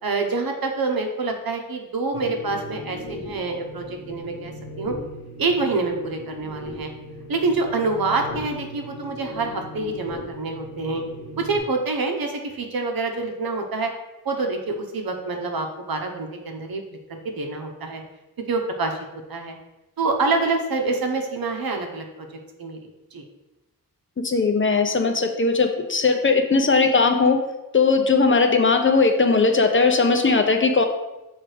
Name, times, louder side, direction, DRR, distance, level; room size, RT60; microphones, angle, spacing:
voice 1, 0.0-4.5 4.8-5.0 5.4-6.9 7.3-11.0 11.4-13.9 14.2-16.8 17.1-18.0 18.5-19.0 19.3-19.6 20.0-22.3 22.6-22.8 23.1-23.2, right 3 dB, 75° right, 3 dB, 1.0 m, -26 dB
sound 1, 2.1-11.6, left 1 dB, 80° left, 1.6 m, -38 dB
voice 2, 24.2-27.4 27.7-30.8, left 4 dB, 35° left, 5 dB, 0.6 m, -19 dB
6.5 x 3.5 x 4.9 m, 0.99 s
wide cardioid pair, 140°, 36 cm